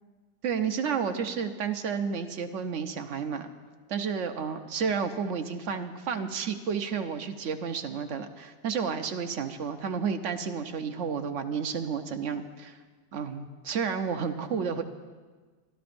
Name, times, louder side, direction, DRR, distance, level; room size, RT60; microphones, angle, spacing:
voice 1, 0.4-3.5 3.9-12.8 13.1-14.8, right 6 dB, 60° right, 7 dB, 1.0 m, -31 dB
26.0 x 12.5 x 2.6 m, 1.4 s
omnidirectional pair, 1.6 m